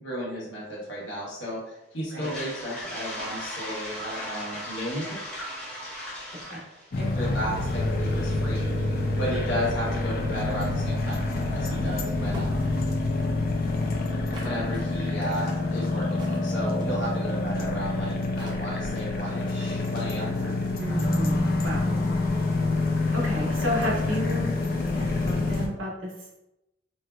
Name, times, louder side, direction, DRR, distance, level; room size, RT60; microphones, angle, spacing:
voice 1, 0.0-5.1 7.0-12.8 14.4-20.4, equal, 65° left, -5 dB, 1.2 m, -34 dB
Toilet flush, 2.1-10.0, equal, 5° left, 0.9 m, -38 dB
sound 1, 6.9-25.7, left 2 dB, 50° left, 0.4 m, -27 dB
sound 2, 12.3-12.8 14.3-17.0 18.0-18.1 18.4-19.2, right 2 dB, 25° right, 0.6 m, -44 dB
voice 2, 20.2-21.9 23.1-24.5 24.9-26.1, equal, 80° right, -3 dB, 1.0 m, -32 dB
4.2 x 2.1 x 2.4 m, 0.90 s
head